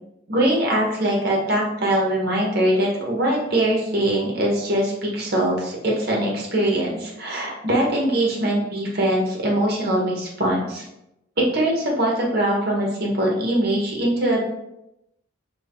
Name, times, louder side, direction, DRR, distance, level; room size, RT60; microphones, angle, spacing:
voice 1, 0.3-10.8 11.4-14.4, right 1 dB, 50° right, -2 dB, 0.9 m, -22 dB
3.5 x 2.3 x 3.5 m, 0.85 s
head